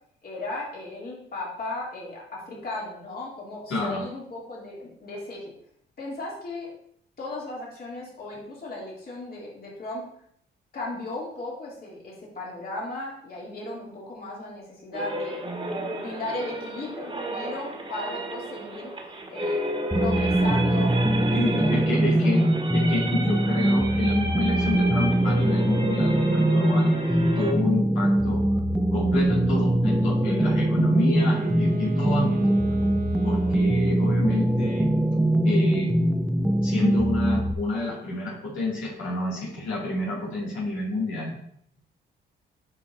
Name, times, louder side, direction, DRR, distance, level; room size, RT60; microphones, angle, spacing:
voice 1, 0.2-5.5 6.0-6.7 7.2-10.1 10.7-15.4 15.9-18.9 19.3-22.5, left 2 dB, 50° left, -4 dB, 2.7 m, -36 dB
voice 2, 3.7-4.0 21.3-28.6 28.9-32.4 33.2-35.9 36.6-41.4, left 2 dB, 80° left, -5 dB, 2.3 m, -29 dB
sound 1, 14.9-27.5, right 1 dB, 25° right, 1.5 m, -32 dB
sound 2, 19.9-37.5, right 1 dB, 5° right, 0.4 m, -22 dB
Wind instrument woodwind instrument, 31.0-33.9, right 8 dB, 45° right, 0.7 m, -37 dB
8.6 x 5.3 x 2.6 m, 0.66 s
cardioid pair, 90°, 20 cm